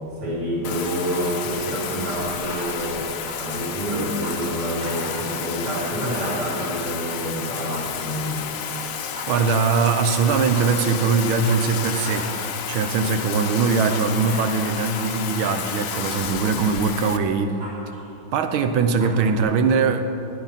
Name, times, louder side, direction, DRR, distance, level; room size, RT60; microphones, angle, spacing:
voice 1, 0.2-3.1 3.4-8.4, right 1 dB, 50° right, -6 dB, 3.7 m, -27 dB
Bathtub (filling or washing), 0.6-17.2, left 8 dB, 85° left, 0.7 m, -31 dB
sound 1, 0.7-1.5 1.9-2.8 3.1-4.5 4.8-6.5 7.4-8.3 8.9-9.7 10.2-12.4 12.7-13.0 13.3-15.7 16.0-18.1 18.3-18.4 18.7-19.4, equal, 70° right, 4.2 m, -39 dB
voice 2, 9.3-12.3 12.7-17.6 18.3-20.0, right 5 dB, 90° right, 8 dB, 1.6 m, -21 dB
13.0 x 9.9 x 5.8 m, 2.9 s
omnidirectional pair, 2.3 m